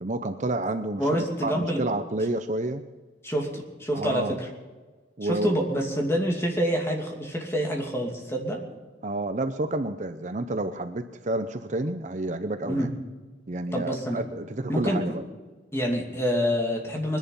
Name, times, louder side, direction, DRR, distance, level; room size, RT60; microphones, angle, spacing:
voice 1, 0.0-2.8 3.9-4.4 5.2-5.7 9.0-12.9 13.5-15.2, right 2 dB, 40° right, 9 dB, 0.7 m, -30 dB
voice 2, 1.0-1.8 3.2-4.5 5.2-8.6 12.7-12.9 13.7-14.2 14.7-15.1 15.7-17.2, equal, 15° left, 0 dB, 2.6 m, -27 dB
21.5 x 10.5 x 5.5 m, 1.3 s
head